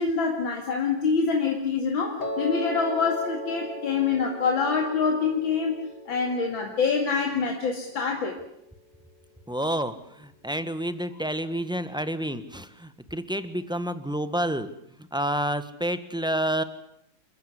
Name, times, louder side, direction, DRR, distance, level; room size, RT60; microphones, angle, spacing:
voice 1, 0.0-5.8 6.1-8.4, left 5 dB, 80° left, 2 dB, 3.1 m, -25 dB
Piano, 2.2-8.3, equal, 55° left, 3.8 m, -37 dB
voice 2, 9.5-14.7 15.1-16.6, right 1 dB, 5° right, 11 dB, 1.1 m, -29 dB
28.0 x 14.5 x 9.8 m, 0.76 s
omnidirectional pair, 2.1 m